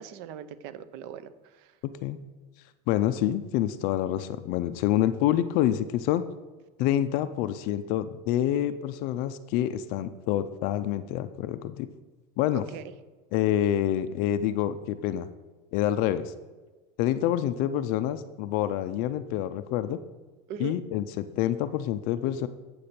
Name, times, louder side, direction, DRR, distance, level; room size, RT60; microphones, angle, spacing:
voice 1, 0.0-1.8 12.5-12.8 20.5-20.8, right 9 dB, 55° right, 14 dB, 0.5 m, -40 dB
voice 2, 1.8-2.2 2.9-6.3 6.8-11.9 12.4-12.6 13.3-15.3 15.7-16.3 17.0-20.0 20.6-22.5, left 12 dB, 50° left, 12 dB, 0.4 m, -27 dB
8.4 x 6.7 x 4.3 m, 1.3 s
cardioid pair, 160°, 20 cm